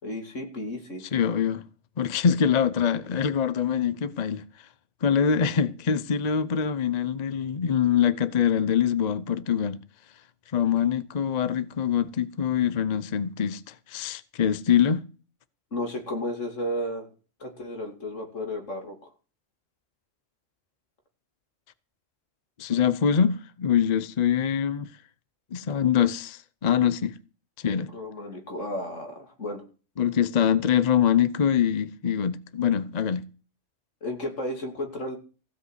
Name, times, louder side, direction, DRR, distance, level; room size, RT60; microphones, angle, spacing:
voice 1, 0.0-1.1 15.7-17.1 17.4-19.1 27.9-29.6 34.0-35.2, left 1 dB, 75° left, 3.0 m, -33 dB
voice 2, 1.1-1.6 2.0-4.5 5.0-9.8 10.5-15.0 22.6-24.9 25.5-27.1 27.6-27.9 30.0-33.3, left 8 dB, 40° left, 0.7 m, -24 dB
16.0 x 5.5 x 8.0 m
omnidirectional pair, 1.3 m